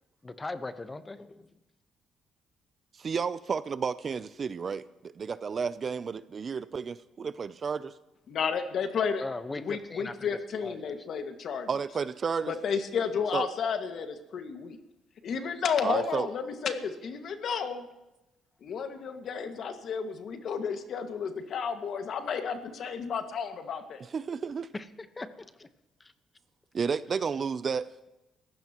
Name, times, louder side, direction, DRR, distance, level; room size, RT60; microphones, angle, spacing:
voice 1, 0.2-1.4 9.2-10.3 10.6-10.9 24.7-24.8 25.2-25.7 26.0-26.1, left 3 dB, 25° left, 10 dB, 1.1 m, -39 dB
voice 2, 3.0-7.9 11.7-12.5 13.3-13.5 15.8-16.3 24.1-24.7 26.7-27.9, right 6 dB, 45° right, 15 dB, 0.5 m, -32 dB
voice 3, 8.3-9.2 9.6-11.7 12.5-14.8 15.2-17.8 18.6-24.0, left 6 dB, 65° left, 5 dB, 1.9 m, -32 dB
29.0 x 15.5 x 3.0 m, 0.99 s
cardioid pair, 90°, 0 cm